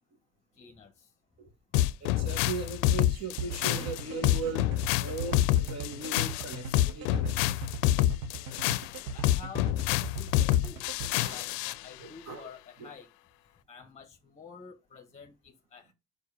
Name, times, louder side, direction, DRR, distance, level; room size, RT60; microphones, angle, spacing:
voice 1, 0.6-1.1 9.1-10.9 11.2-13.1 13.7-15.9, left 5 dB, 20° left, 1.1 m, -49 dB
sound 1, 1.7-11.8, left 14 dB, 80° left, 0.5 m, -27 dB
voice 2, 2.0-7.4 11.2-11.4 12.0-12.5 12.8-12.9, right 4 dB, 45° right, 1.8 m, -38 dB
sound 2, 3.4-11.1, right 4 dB, 65° right, 1.3 m, -38 dB
5.2 x 4.7 x 4.8 m
supercardioid pair, 90°, 37 cm